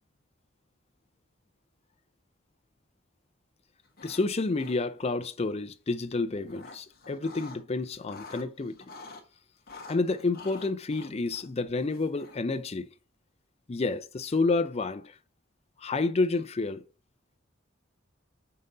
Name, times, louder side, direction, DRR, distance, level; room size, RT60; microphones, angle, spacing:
sound 1, 3.9-4.3 4.5-5.1 6.1-7.6 7.9-9.2 9.7-12.6, left 3 dB, 55° left, 1.2 m, -48 dB
voice 1, 4.0-8.8 9.9-12.9 13.7-15.2 15.8-16.9, left 3 dB, 35° left, 0.5 m, -29 dB
5.6 x 3.9 x 5.4 m
head